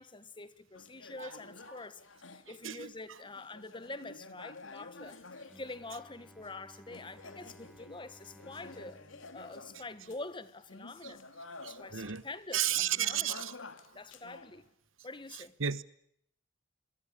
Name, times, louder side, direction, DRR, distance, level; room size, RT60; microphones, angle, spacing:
voice 1, 0.0-2.0 2.3-5.2 5.5-9.0 9.3-11.2 11.6-12.7 13.0-13.4 13.9-14.6 15.0-15.5, left 3 dB, 25° left, 1.5 m, -46 dB
sound 1, 0.7-6.5 6.9-12.2 12.5-14.6, left 3 dB, 80° left, 2.6 m, -51 dB
voice 2, 2.5-3.2 11.0-11.1 11.6-12.2 12.5-13.5 15.3-15.8, right 10 dB, 90° right, 1.2 m, -34 dB
Bowed string instrument, 5.5-10.7, equal, ahead, 1.5 m, -59 dB
27.5 x 22.0 x 8.5 m
head